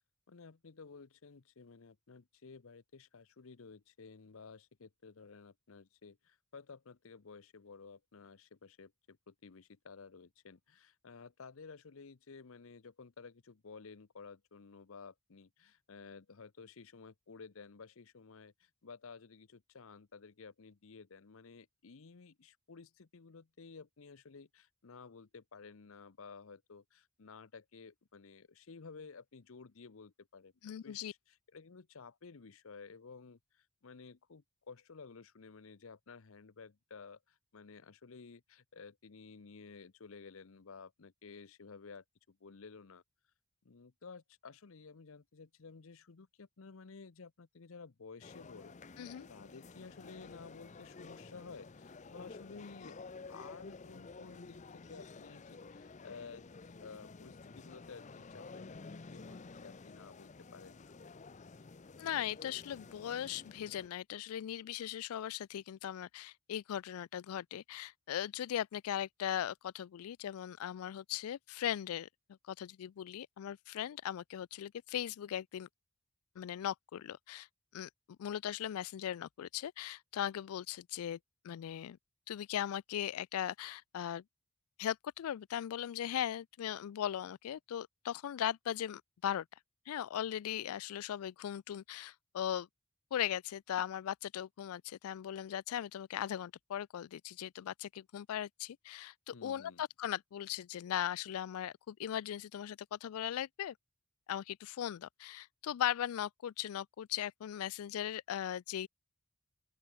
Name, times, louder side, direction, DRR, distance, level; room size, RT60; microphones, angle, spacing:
voice 1, 0.3-43.0 43.6-48.8 49.3-53.0 53.3-56.5 56.8-60.9 99.3-99.8, left 4 dB, 70° left, 0.7 m, -54 dB
voice 2, 30.6-31.1 49.0-49.3 62.0-72.1 72.5-75.7 76.4-77.5 77.7-77.9 78.2-81.2 81.4-82.0 82.3-84.2 84.8-89.5 89.9-92.7 93.1-103.7 104.3-108.9, left 10 dB, 85° left, 0.3 m, -38 dB
sound 1, 48.2-63.9, left 4 dB, 35° left, 0.5 m, -52 dB
open air
head